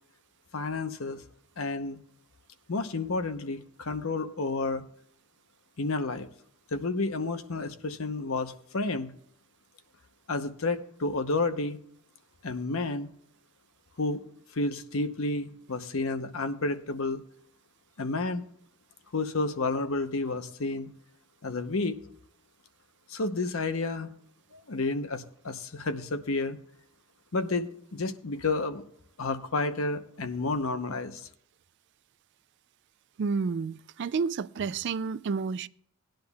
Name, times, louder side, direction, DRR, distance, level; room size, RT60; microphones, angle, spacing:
voice 1, 0.5-1.2 1.6-2.0 2.7-4.8 5.8-6.3 6.7-9.1 10.3-11.8 12.4-13.1 14.0-14.2 14.5-17.2 18.0-18.5 19.1-20.9 21.4-22.0 23.1-24.1 24.5-26.6 27.3-28.8 29.2-31.2, left 3 dB, 65° left, 0.9 m, -30 dB
voice 2, 33.2-35.7, right 5 dB, 50° right, 0.3 m, -30 dB
18.5 x 10.5 x 2.3 m
head